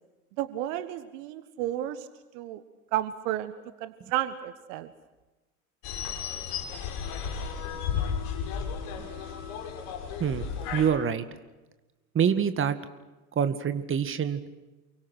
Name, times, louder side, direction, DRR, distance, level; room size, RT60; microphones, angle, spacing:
voice 1, 0.4-2.1 2.3-2.6 2.9-3.5 3.8-4.9, right 13 dB, 55° right, 13 dB, 1.6 m, -32 dB
sound 1, 5.8-10.9, left 7 dB, 50° left, 6.4 m, -33 dB
voice 2, 10.2-11.3 12.1-12.8 13.4-14.4, right 7 dB, 30° right, 12 dB, 2.1 m, -26 dB
29.0 x 24.0 x 6.4 m, 1.1 s
figure-of-eight pair, 80°, 44 cm